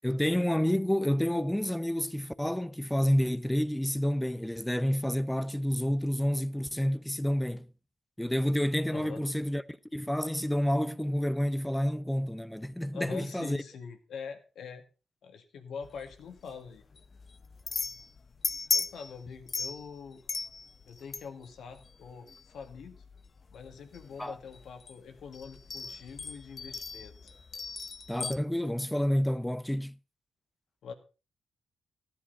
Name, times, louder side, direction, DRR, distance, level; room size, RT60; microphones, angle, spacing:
voice 1, 0.0-7.7 8.2-13.6 24.2-24.4 28.1-29.9, equal, 5° left, 0.7 m, -29 dB
voice 2, 8.9-9.2 12.9-14.8 15.2-16.8 17.7-17.8 18.7-20.2 20.8-23.0 23.5-27.3 30.8-30.9, left 6 dB, 75° left, 2.1 m, -44 dB
sound 1, 15.8-28.3, left 4 dB, 45° left, 0.8 m, -38 dB
14.0 x 10.0 x 4.1 m
cardioid pair, 75°, 0 cm